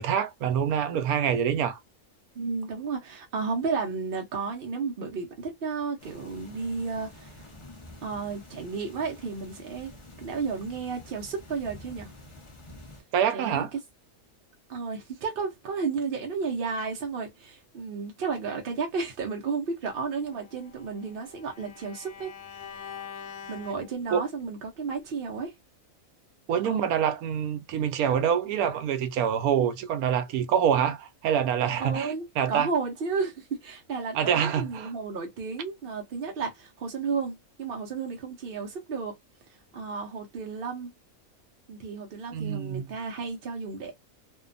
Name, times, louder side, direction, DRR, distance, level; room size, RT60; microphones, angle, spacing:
voice 1, 0.0-1.8 13.1-13.7 24.1-24.2 26.5-32.1 32.4-32.7 34.1-34.9 42.3-42.9, right 8 dB, 85° right, 1.0 m, -26 dB
voice 2, 2.3-7.4 8.0-9.9 10.2-12.1 13.3-13.8 14.7-22.9 23.5-25.6 26.6-26.9 31.8-39.2 39.5-40.9 41.7-43.9, right 5 dB, 55° right, 0.6 m, -33 dB
sound 1, 6.0-13.0, left 1 dB, 40° left, 0.4 m, -48 dB
Bowed string instrument, 20.3-24.5, left 7 dB, 85° left, 1.1 m, -45 dB
2.7 x 2.2 x 2.4 m
omnidirectional pair, 1.5 m